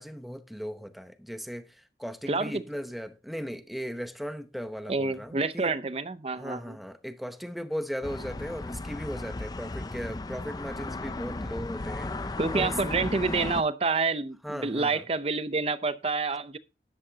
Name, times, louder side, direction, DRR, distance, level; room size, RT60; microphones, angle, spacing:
voice 1, 0.0-5.7 6.3-12.8 14.4-15.0, equal, ahead, 0.8 m, -37 dB
voice 2, 2.3-2.6 4.9-6.8 12.4-16.6, right 4 dB, 35° right, 0.6 m, -28 dB
sound 1, 8.0-13.6, left 2 dB, 20° left, 0.4 m, -35 dB
13.0 x 11.0 x 2.8 m
head